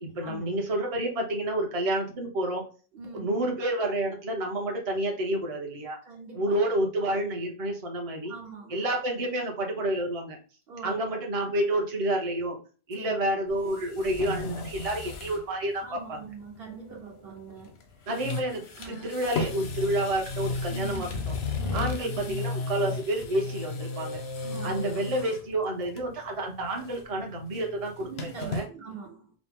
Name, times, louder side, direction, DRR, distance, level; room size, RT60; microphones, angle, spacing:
voice 1, 0.0-2.6 3.1-6.0 6.3-8.3 8.7-10.4 10.8-12.6 12.9-16.2 18.1-21.1 21.7-24.2 24.6-28.6, right 1 dB, 40° right, 1 dB, 0.7 m, -29 dB
voice 2, 2.9-3.4 6.0-6.6 8.3-8.8 10.7-11.0 13.0-13.3 15.8-17.8 18.8-19.1 20.7-21.2 21.5-22.4 24.4-24.8 28.0-29.3, right 5 dB, 70° right, 1 dB, 1.3 m, -42 dB
sound 1, 13.5-15.4 15.8-15.9 17.6-17.8 18.1-25.5 25.9-26.3 26.6-28.7, left 3 dB, 90° left, 0.9 m, -34 dB
4.9 x 2.0 x 3.5 m, 0.37 s
omnidirectional pair, 1.0 m